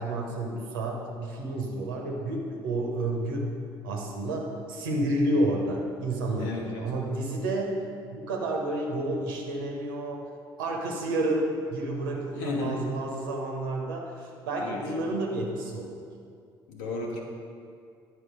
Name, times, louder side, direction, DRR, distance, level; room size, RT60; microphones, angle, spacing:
voice 1, 0.0-3.5 3.8-7.8 8.1-10.2 10.6-16.0, right 1 dB, 70° right, 0 dB, 1.1 m, -30 dB
voice 2, 6.4-6.9 12.4-12.9 14.6-14.8 16.7-17.2, left 2 dB, 65° left, 0 dB, 1.1 m, -33 dB
9.6 x 4.9 x 5.1 m, 2.3 s
figure-of-eight pair, 50°, 11 cm